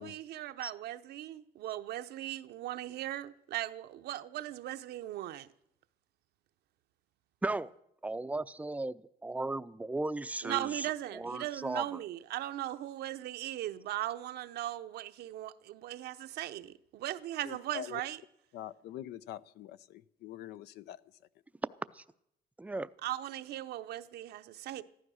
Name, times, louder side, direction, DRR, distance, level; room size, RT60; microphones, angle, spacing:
voice 1, 0.0-5.5 10.4-18.2 23.0-24.8, right 13 dB, 75° right, 0.8 m, -38 dB
voice 2, 8.0-8.9 9.2-12.0 21.9-22.0 22.6-22.9, right 2 dB, 10° right, 0.5 m, -36 dB
voice 3, 17.4-18.0 18.5-21.0, left 12 dB, 75° left, 0.6 m, -44 dB
14.5 x 12.5 x 6.3 m
cardioid pair, 110°, 17 cm